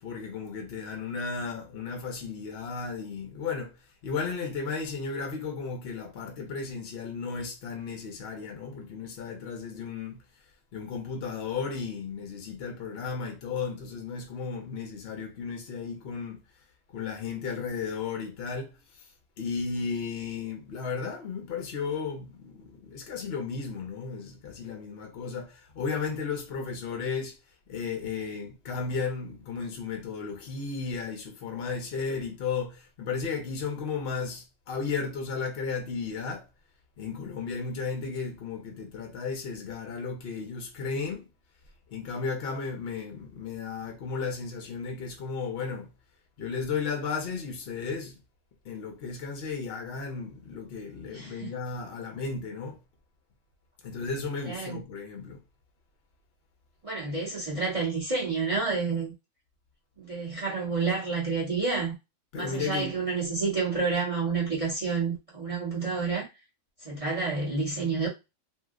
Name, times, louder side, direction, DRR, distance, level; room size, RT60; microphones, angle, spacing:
voice 1, 0.0-10.2 10.7-16.4 16.9-19.1 19.4-27.4 27.7-36.5 37.0-41.3 41.9-45.9 46.4-48.2 48.6-52.8 53.8-55.4 62.3-63.0, left 5 dB, 55° left, 0.8 m, -34 dB
voice 2, 51.1-51.5 54.4-54.8 56.8-59.1 60.0-61.9 62.3-66.3 66.8-68.1, right 4 dB, 30° right, 1.0 m, -29 dB
2.8 x 2.0 x 3.5 m
omnidirectional pair, 1.4 m